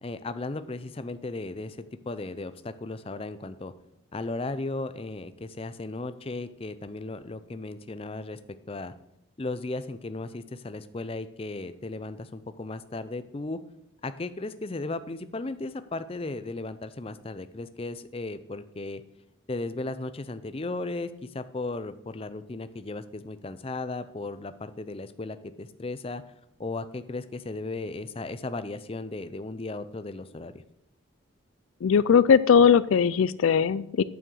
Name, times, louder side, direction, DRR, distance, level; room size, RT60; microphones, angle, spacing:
voice 1, 0.0-1.8 2.1-3.7 4.1-8.4 8.7-8.9 9.4-13.6 14.0-19.0 19.5-26.2 26.6-30.6, left 2 dB, 30° left, 12 dB, 0.5 m, -35 dB
voice 2, 31.8-34.0, left 7 dB, 85° left, 18 dB, 0.4 m, -19 dB
8.9 x 7.1 x 6.2 m, 0.83 s
head